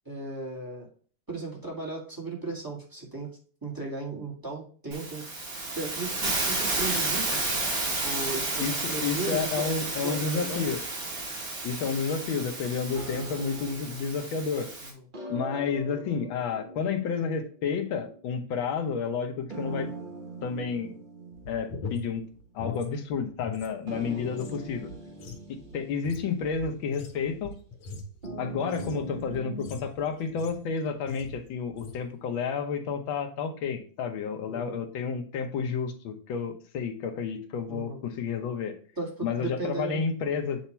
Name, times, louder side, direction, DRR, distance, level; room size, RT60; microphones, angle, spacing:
voice 1, 0.0-0.9 1.3-3.3 3.6-5.2 5.7-7.4 8.0-10.7 14.8-15.0 24.1-24.3 34.5-34.8 37.7-38.0 39.0-40.1, right 3 dB, 10° right, -2 dB, 1.5 m, -36 dB
Hiss, 4.9-14.9, right 2 dB, 40° right, 2.5 m, -32 dB
voice 2, 8.6-10.8 11.6-14.7 15.3-19.9 20.4-20.9 21.5-22.2 22.5-24.9 25.5-27.5 28.4-38.7 39.2-40.6, left 6 dB, 70° left, 5 dB, 1.7 m, -31 dB
sound 1, 13.0-14.5 15.1-18.4 19.5-22.3 22.6-22.7 23.9-27.0 28.2-29.7, right 2 dB, 75° right, 0.4 m, -42 dB
sound 2, 21.3-23.7 24.0-30.7 31.1-31.4 31.7-32.1, left 2 dB, 90° left, 1.9 m, -41 dB
8.1 x 2.9 x 4.3 m, 0.43 s
omnidirectional pair, 2.3 m